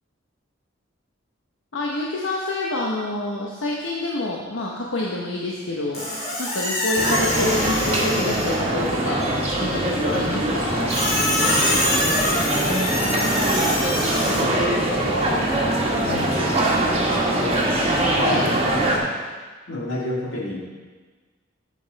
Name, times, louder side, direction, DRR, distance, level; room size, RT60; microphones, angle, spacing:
voice 1, 1.7-6.1 6.4-10.9 18.1-18.5, left 2 dB, 85° left, -3 dB, 0.9 m, -27 dB
Squeak, 5.9-8.7 10.9-14.4, left 1 dB, 55° left, 2.9 m, -25 dB
sound 1, 7.0-19.0, right 1 dB, 30° right, 1.5 m, -22 dB
voice 2, 12.6-17.6 19.7-20.7, left 1 dB, 70° left, -2 dB, 1.9 m, -31 dB
8.4 x 7.8 x 4.0 m, 1.4 s
head